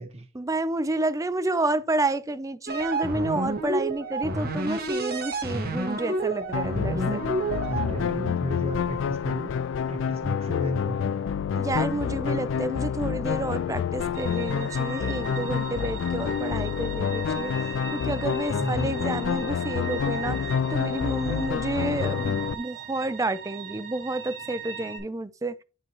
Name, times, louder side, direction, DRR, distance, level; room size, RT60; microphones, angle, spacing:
voice 1, 0.3-7.2 11.5-17.5 17.9-25.6, right 2 dB, 15° right, 0.5 m, -30 dB
sound 1, 2.7-8.4, right 2 dB, 50° right, 1.5 m, -29 dB
sound 2, 6.5-22.6, left 7 dB, 70° left, 0.3 m, -28 dB
voice 2, 7.7-9.5 9.9-11.1 18.5-19.0, equal, 30° right, 1.1 m, -33 dB
sound 3, 14.1-25.0, right 8 dB, 80° right, 3.7 m, -39 dB
11.0 x 4.5 x 3.0 m
head